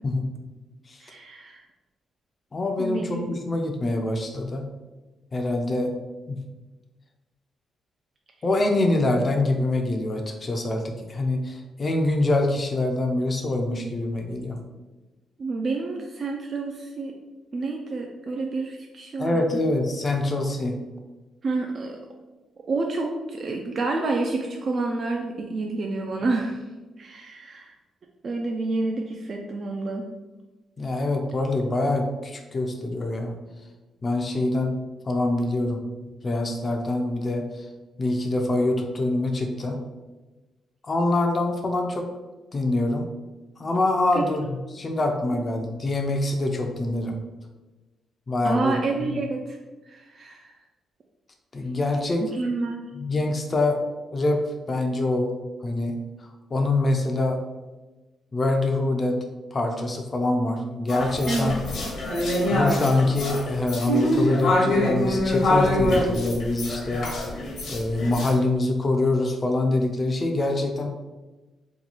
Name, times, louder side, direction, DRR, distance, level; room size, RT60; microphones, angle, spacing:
voice 1, 1.0-1.6 2.8-3.4 15.4-17.2 17.5-19.4 21.4-22.0 22.7-26.6 27.0-27.7 28.2-30.1 44.1-44.2 45.3-45.4 48.4-49.6 49.9-50.5 52.2-52.9 61.3-61.6, right 3 dB, 45° right, 1 dB, 0.3 m, -29 dB
voice 2, 2.5-4.7 5.3-5.9 6.3-6.4 8.4-14.6 19.2-20.7 30.8-33.4 34.0-34.8 35.1-37.7 38.0-39.8 40.8-42.0 42.5-43.0 43.6-47.2 48.3-49.2 51.5-52.2 52.9-53.8 54.1-54.4 54.7-55.3 55.6-55.9 56.2-57.4 58.3-59.2 59.5-61.6 62.5-67.1 67.7-70.9, left 2 dB, 35° left, 3 dB, 0.4 m, -25 dB
sound 1, 60.9-68.3, left 1 dB, 70° left, 0.9 m, -25 dB
2.9 x 2.2 x 3.9 m, 1.2 s
cardioid pair, 110°, 0 cm